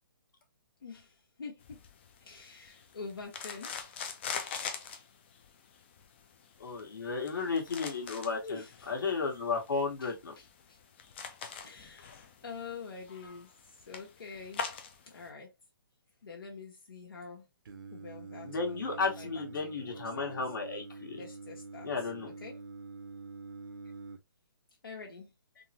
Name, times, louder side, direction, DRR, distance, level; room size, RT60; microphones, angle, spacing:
voice 1, 0.8-1.8 2.2-3.8 8.4-8.9 10.0-10.8 11.6-14.7 15.1-15.5 16.2-17.5 17.9-20.4 21.1-22.6 24.8-25.3, left 4 dB, 85° left, 1.1 m, -46 dB
sound 1, 1.6-15.3, left 6 dB, 30° left, 0.4 m, -44 dB
voice 2, 6.6-8.6 8.9-10.3 18.4-21.2 21.8-22.3, left 4 dB, 65° left, 1.3 m, -33 dB
Singing, 17.6-24.2, right 4 dB, 70° right, 0.8 m, -46 dB
3.6 x 2.1 x 2.8 m
hypercardioid pair, 160°, 12 cm